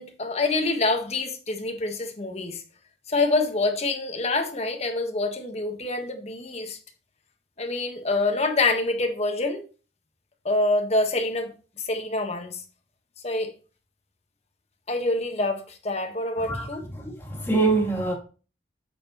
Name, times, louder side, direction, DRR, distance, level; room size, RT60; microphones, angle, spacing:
voice 1, 0.0-2.6 3.1-6.8 7.6-9.6 10.4-11.5 11.8-12.6 13.2-13.5 14.9-16.8, left 2 dB, 35° left, 1.4 m, -26 dB
voice 2, 17.0-18.1, right 3 dB, 15° left, 2.3 m, -24 dB
8.4 x 6.9 x 3.1 m
head